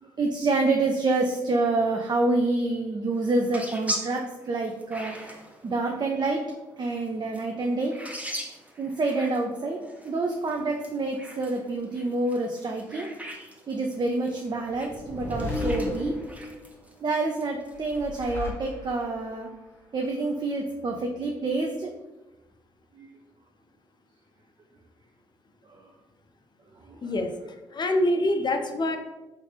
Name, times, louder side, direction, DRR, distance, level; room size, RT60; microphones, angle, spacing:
voice 1, 0.2-5.2 5.6-6.4 6.8-8.0 8.8-9.8 10.0-13.1 13.7-16.2 17.0-19.5 19.9-21.9 23.0-23.1 25.7-25.8 26.9-27.1, right 2 dB, 40° right, 2 dB, 0.5 m, -27 dB
sound 1, 3.1-18.3, equal, 10° right, 0.8 m, -41 dB
sound 2, 14.7-16.7 17.7-19.3, left 2 dB, 20° left, 0.9 m, -33 dB
voice 2, 27.0-27.3 27.7-29.0, left 1 dB, 40° left, 5 dB, 0.5 m, -25 dB
3.3 x 3.2 x 2.8 m, 1.1 s
hypercardioid pair, 45°, 12 cm